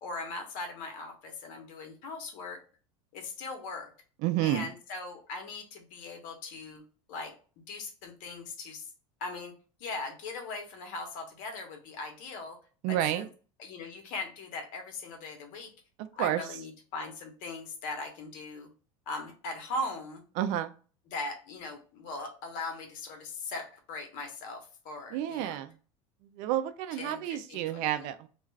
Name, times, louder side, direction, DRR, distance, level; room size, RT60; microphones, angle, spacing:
voice 1, 0.0-2.6 3.1-3.9 4.4-6.8 7.1-7.3 7.7-8.9 9.2-9.5 9.8-12.6 12.9-13.2 13.6-15.7 16.1-18.7 19.1-20.2 21.1-25.6 26.9-28.1, left 3 dB, 55° left, 4 dB, 1.0 m, -39 dB
voice 2, 4.2-4.7 12.8-13.3 16.2-16.4 20.4-20.7 25.1-25.8 26.2-28.3, right 12 dB, 55° right, 10 dB, 0.4 m, -30 dB
2.4 x 2.3 x 3.2 m, 0.38 s
supercardioid pair, 110°, 16 cm